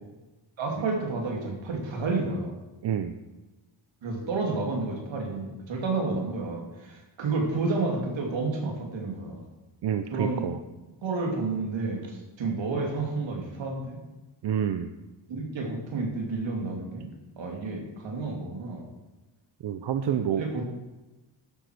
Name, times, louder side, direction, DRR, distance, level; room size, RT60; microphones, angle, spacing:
voice 1, 0.6-2.6 4.0-9.4 10.1-10.4 11.0-14.0 15.3-17.1 17.4-18.9 20.1-20.6, right 3 dB, 85° right, 1 dB, 3.1 m, -30 dB
voice 2, 2.8-3.1 9.8-10.6 14.4-14.9 19.6-20.4, right 8 dB, 65° right, 9 dB, 0.7 m, -28 dB
11.5 x 7.9 x 6.7 m, 1.1 s
wide cardioid pair, 140°, 44 cm